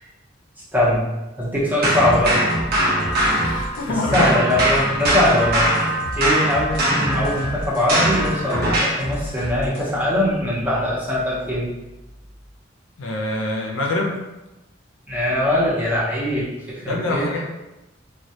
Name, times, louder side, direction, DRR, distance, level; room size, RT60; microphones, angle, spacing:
voice 1, 0.7-1.0 1.4-2.4 3.9-11.7 15.1-17.3, left 1 dB, 10° right, -7 dB, 0.6 m, -22 dB
sound 1, 1.8-3.9 4.1-9.1, right 1 dB, 55° right, 0.6 m, -21 dB
sound 2, 2.0-9.9, equal, 55° left, 0.7 m, -33 dB
voice 2, 3.1-4.3 13.0-14.2 16.9-17.4, left 2 dB, 85° left, 0 dB, 0.5 m, -25 dB
2.2 x 2.1 x 2.7 m, 1.0 s
head